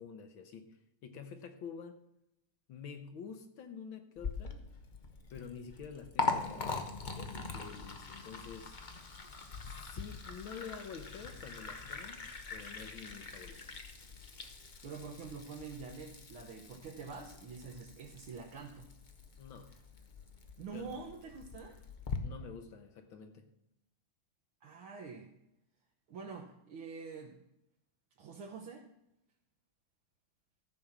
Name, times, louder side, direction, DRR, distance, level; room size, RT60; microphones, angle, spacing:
voice 1, 0.0-2.0 2.7-4.6 5.3-8.8 9.6-13.8 19.4-19.7 20.7-21.0 22.2-23.5, left 6 dB, 70° left, 8 dB, 1.7 m, -48 dB
Liquid, 4.2-22.2, left 4 dB, 50° left, 0.5 m, -42 dB
voice 2, 14.8-18.9 20.6-21.7 24.6-25.3 26.1-27.4 28.2-28.8, right 5 dB, 70° right, -1 dB, 1.9 m, -46 dB
13.5 x 5.3 x 7.2 m, 0.83 s
omnidirectional pair, 2.4 m